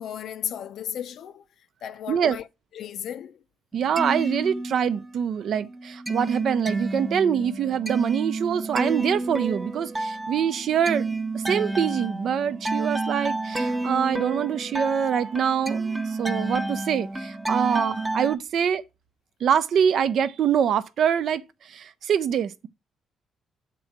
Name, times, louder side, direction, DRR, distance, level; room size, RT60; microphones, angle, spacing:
voice 1, 0.0-1.4 1.8-2.5 2.7-3.4, left 9 dB, 70° left, 0.6 m, -34 dB
sound 1, 3.7-5.2 5.5-18.3, right 2 dB, 15° right, 0.7 m, -30 dB
voice 2, 3.7-11.2 11.5-18.8 19.4-21.4 21.7-22.7, right 8 dB, 65° right, 0.6 m, -24 dB
7.5 x 3.9 x 5.8 m
cardioid pair, 90°, 0 cm